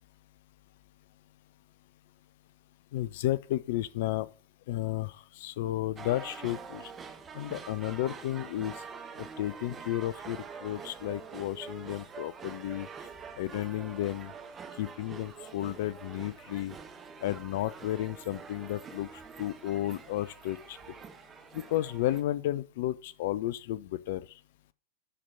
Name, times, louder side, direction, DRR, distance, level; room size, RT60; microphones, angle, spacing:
voice 1, 2.9-4.3 4.7-6.9 7.3-8.7 9.2-12.9 13.4-14.3 14.8-16.8 17.2-19.1 19.4-20.8 21.5-24.2, left 14 dB, 50° left, 0.5 m, -33 dB
sound 1, 6.0-22.2, right 6 dB, 20° right, 1.1 m, -46 dB
10.0 x 4.5 x 6.5 m
figure-of-eight pair, 90°, 0 cm